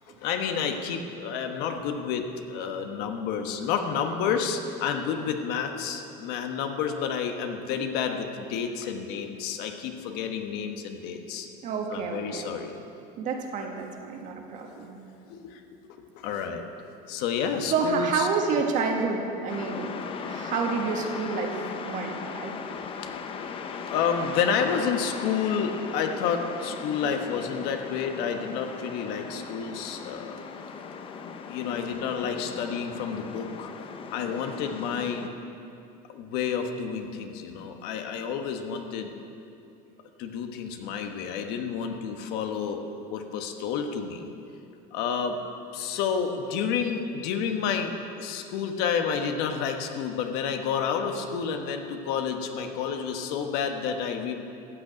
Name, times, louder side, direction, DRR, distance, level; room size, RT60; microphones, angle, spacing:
voice 1, 0.2-11.5 11.9-12.8 14.7-14.9 15.3-15.6 16.2-16.6 17.1-18.3 22.7-23.1 23.8-30.4 31.5-33.7 34.1-35.3 36.1-39.1 40.2-42.8 43.1-44.3 44.9-45.4 45.7-47.9 48.2-54.4, left 7 dB, 60° left, 5 dB, 1.3 m, -30 dB
voice 2, 11.6-12.5 13.2-15.0 17.7-19.9 20.3-22.5, right 5 dB, 45° right, 2 dB, 1.6 m, -29 dB
sound 1, 19.5-35.3, left 5 dB, 30° left, 0.7 m, -38 dB
14.0 x 6.5 x 9.0 m, 2.6 s
cardioid pair, 145°, 18 cm